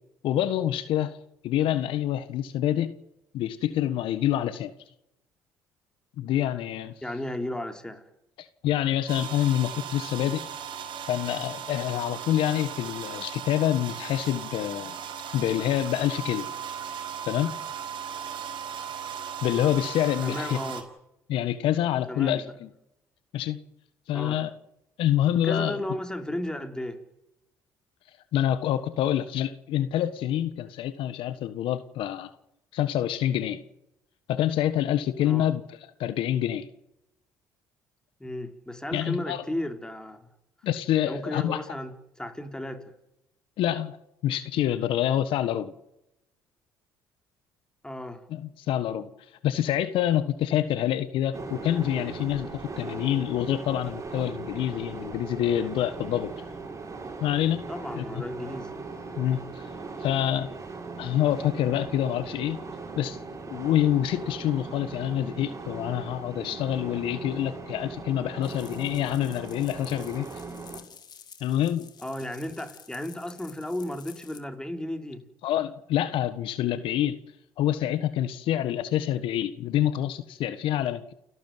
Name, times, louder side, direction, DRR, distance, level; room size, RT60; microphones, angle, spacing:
voice 1, 0.2-1.2 1.4-2.9 3.3-4.7 6.2-6.9 8.4-10.5 11.1-15.0 15.3-16.5 17.3-17.5 19.4-20.6 21.3-22.7 23.3-23.6 24.1-24.5 25.0-25.8 28.3-32.3 32.7-33.6 34.3-36.7 38.9-39.4 40.6-41.6 43.6-44.0 44.2-45.7 48.3-49.1 49.4-56.3 57.2-57.6 57.9-58.0 59.2-59.7 60.0-60.5 61.0-62.6 63.0-63.2 63.5-70.3 71.4-71.9 75.4-77.2 77.6-81.1, left 11 dB, 70° left, 13 dB, 1.4 m, -27 dB
voice 2, 7.0-8.1 20.2-20.9 22.1-22.4 24.1-24.4 25.4-27.0 35.2-35.5 38.2-40.3 41.1-42.9 47.8-48.2 57.7-58.8 72.0-75.3, left 1 dB, 10° left, 6 dB, 4.2 m, -34 dB
sound 1, 9.1-20.8, right 8 dB, 65° right, 5.1 m, -37 dB
sound 2, 51.3-70.8, right 4 dB, 35° right, 6.6 m, -39 dB
sound 3, 68.4-74.4, left 7 dB, 50° left, 3.4 m, -50 dB
30.0 x 13.0 x 9.3 m, 0.86 s
hypercardioid pair, 60°, 9 cm